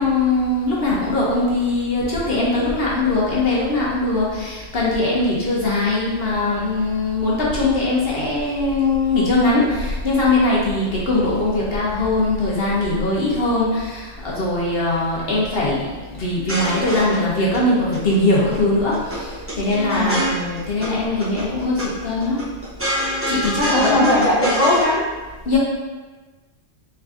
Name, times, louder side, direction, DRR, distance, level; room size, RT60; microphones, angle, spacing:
voice 1, 0.0-22.4 23.3-24.2 25.4-25.6, left 2 dB, 55° left, -5 dB, 1.0 m, -21 dB
sound 1, 16.3-17.6 17.9-18.6 18.8-20.9 21.2-21.9 22.2-24.9, equal, 15° right, 0.6 m, -25 dB
voice 2, 23.7-25.0, left 1 dB, 35° left, -5 dB, 0.8 m, -18 dB
4.4 x 3.5 x 2.5 m, 1.3 s
omnidirectional pair, 1.3 m